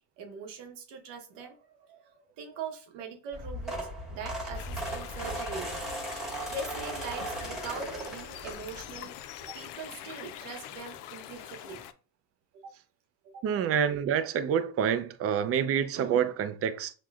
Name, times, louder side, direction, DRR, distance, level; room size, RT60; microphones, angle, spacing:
voice 1, 0.2-5.8 6.4-9.1 9.5-11.8 12.6-12.7 13.3-13.4, right 4 dB, 90° right, 1.0 m, -42 dB
sound 1, 3.3-9.0 9.4-9.7 10.9-11.0 11.2-11.4 11.7-11.8, right 1 dB, ahead, 1.3 m, -37 dB
sound 2, 4.5-11.9, left 11 dB, 85° left, 0.5 m, -44 dB
voice 2, 13.4-16.9, right 8 dB, 35° right, 0.4 m, -27 dB
6.0 x 2.2 x 2.3 m
cardioid pair, 100°, 41 cm